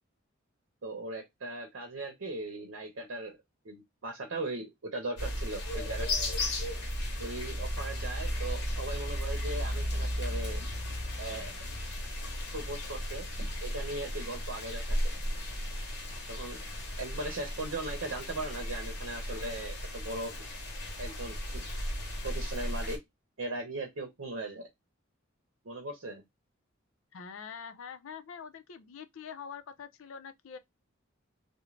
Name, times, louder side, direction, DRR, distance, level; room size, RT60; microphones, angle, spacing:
voice 1, 0.8-3.4 3.6-6.1 7.2-10.7 11.2-11.5 12.5-15.0 16.3-16.6 17.0-20.3 21.0-21.6 22.2-23.0 23.4-24.7 25.6-26.2, right 2 dB, 75° right, 0.8 m, -38 dB
sound 1, 5.2-23.0, left 1 dB, 55° left, 0.9 m, -35 dB
voice 2, 27.1-30.6, left 6 dB, 75° left, 0.4 m, -45 dB
2.4 x 2.0 x 3.1 m
head